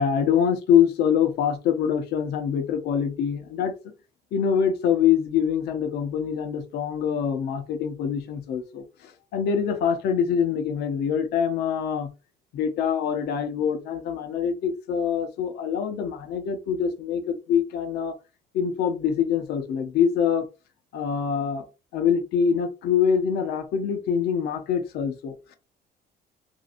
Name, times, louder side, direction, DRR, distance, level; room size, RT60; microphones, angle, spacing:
voice 1, 0.0-3.7 4.3-12.1 12.5-18.1 18.5-20.5 20.9-21.6 21.9-25.6, left 7 dB, 75° left, 0.6 m, -24 dB
2.8 x 2.5 x 2.4 m
cardioid pair, 110°, 17 cm